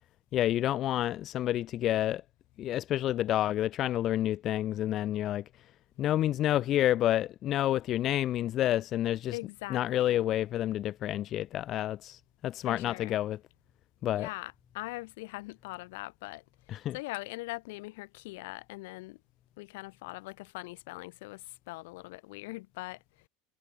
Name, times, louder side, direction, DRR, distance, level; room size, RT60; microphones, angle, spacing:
voice 1, 0.3-2.2 2.6-9.4 9.7-13.4 14.0-14.3 16.7-17.0, left 13 dB, 30° left, 0.9 m, -29 dB
voice 2, 9.3-10.2 12.6-13.2 14.1-16.4 16.9-19.2 19.6-23.0, left 22 dB, 65° left, 4.5 m, -41 dB
supercardioid pair, 175°, 0 cm